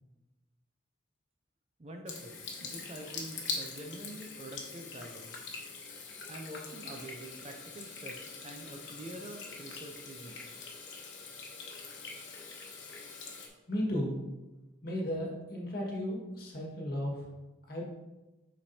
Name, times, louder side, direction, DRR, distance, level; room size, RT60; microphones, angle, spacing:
voice 1, 1.8-5.3 6.3-10.4, right 1 dB, 35° right, 3 dB, 0.6 m, -46 dB
Water tap faucet / Sink (filling or washing), 2.1-13.5, left 4 dB, 70° left, 1.1 m, -43 dB
voice 2, 13.7-14.2 14.8-17.3 17.7-17.9, equal, 50° left, -3 dB, 1.6 m, -34 dB
7.1 x 5.1 x 2.8 m, 1.1 s
head